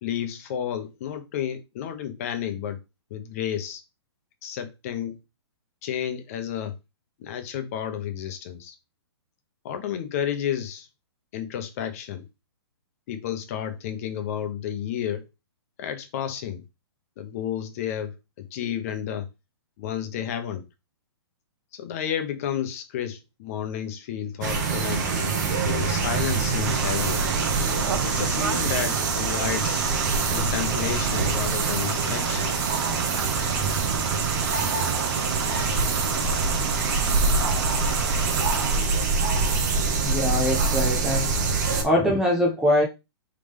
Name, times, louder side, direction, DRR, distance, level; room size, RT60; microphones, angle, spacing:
voice 1, 0.0-2.8 3.1-3.8 4.4-5.2 5.8-6.7 7.2-8.7 9.6-10.9 11.3-12.2 13.1-15.2 15.8-16.6 17.2-19.3 19.8-20.6 21.7-25.1 25.6-27.3 28.0-29.8 30.3-32.6, left 9 dB, 35° left, 0.8 m, -31 dB
sound 1, 24.4-41.8, right 4 dB, 40° right, 1.0 m, -25 dB
sound 2, 26.6-38.8, right 6 dB, 70° right, 0.7 m, -32 dB
voice 2, 40.0-41.3 41.7-42.8, left 1 dB, 5° right, 0.4 m, -23 dB
3.8 x 3.6 x 3.3 m
hypercardioid pair, 160°, 14 cm